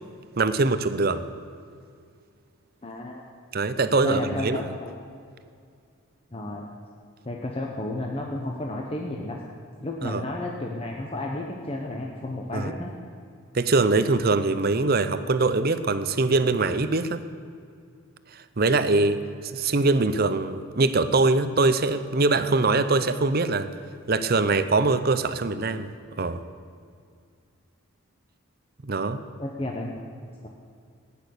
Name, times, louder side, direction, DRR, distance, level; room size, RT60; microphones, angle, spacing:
voice 1, 0.4-1.2 3.5-4.6 10.0-10.2 12.5-12.7 13.5-17.2 18.3-23.7 24.1-25.9 26.2-26.4 28.8-29.2, right 3 dB, 45° right, 12 dB, 0.6 m, -23 dB
voice 2, 2.8-3.2 4.0-4.9 6.3-6.7 7.2-9.4 9.8-12.9 29.4-30.0 30.4-30.5, left 1 dB, 25° left, 0 dB, 1.0 m, -32 dB
15.5 x 10.5 x 6.7 m, 2.3 s
head